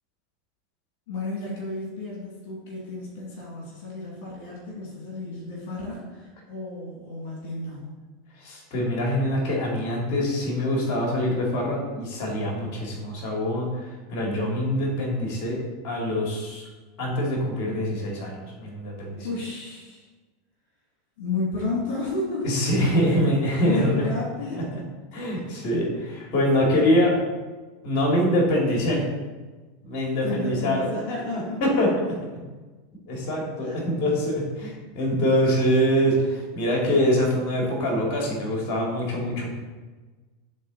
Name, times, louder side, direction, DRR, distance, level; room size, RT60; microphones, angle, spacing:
voice 1, 1.1-7.8 19.2-20.1 21.2-22.6 23.6-24.8 26.7-26.9 30.2-31.6 33.6-33.8, left 2 dB, 70° left, -3 dB, 2.3 m, -32 dB
voice 2, 8.4-15.6 15.8-16.6 17.0-19.3 22.4-24.0 24.5-24.6 25.1-27.1 27.8-29.0 29.9-30.9 31.6-31.9 33.1-39.5, equal, 50° left, -2 dB, 2.4 m, -24 dB
9.3 x 3.9 x 4.0 m, 1.3 s
hypercardioid pair, 100°, 0 cm